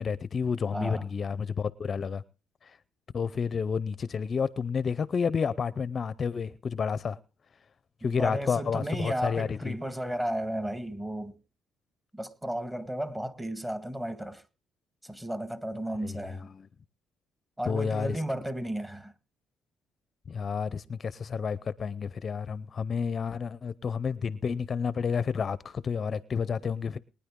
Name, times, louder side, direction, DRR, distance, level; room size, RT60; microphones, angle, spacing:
voice 1, 0.0-2.2 2.6-2.8 3.1-7.2 8.0-9.8 16.0-16.7 17.7-18.2 20.3-27.0, left 6 dB, 40° left, 0.6 m, -30 dB
voice 2, 0.7-1.0 8.0-11.4 12.1-14.4 15.0-16.5 17.6-19.1, right 1 dB, 15° right, 1.7 m, -34 dB
22.0 x 9.9 x 3.7 m
cardioid pair, 85°, 0 cm